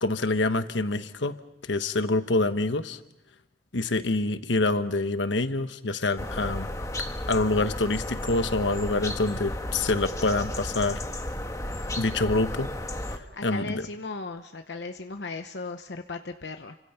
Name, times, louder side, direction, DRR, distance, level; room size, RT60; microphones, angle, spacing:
voice 1, 0.0-1.4 1.6-3.0 3.7-6.7 7.3-11.0 11.9-12.7 13.4-13.9, left 2 dB, 85° left, 10 dB, 1.2 m, -26 dB
sound 1, 6.2-13.2, left 1 dB, 15° left, 1.6 m, -33 dB
voice 2, 13.3-16.8, left 3 dB, 70° left, 6 dB, 0.9 m, -37 dB
29.5 x 25.5 x 5.8 m, 0.89 s
head